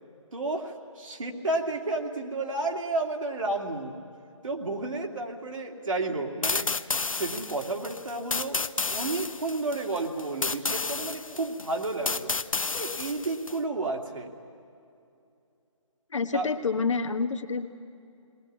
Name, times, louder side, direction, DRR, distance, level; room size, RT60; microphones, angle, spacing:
voice 1, 0.3-4.0 4.4-6.7 7.1-8.6 8.9-12.3 12.7-14.3 16.3-16.5, right 2 dB, 70° right, 1 dB, 2.5 m, -31 dB
sound 1, 6.4-13.6, left 4 dB, 85° left, 0.7 m, -31 dB
voice 2, 16.1-17.7, left 4 dB, 65° left, 6 dB, 1.3 m, -28 dB
19.5 x 19.5 x 9.7 m, 2.6 s
figure-of-eight pair, 145°, 17 cm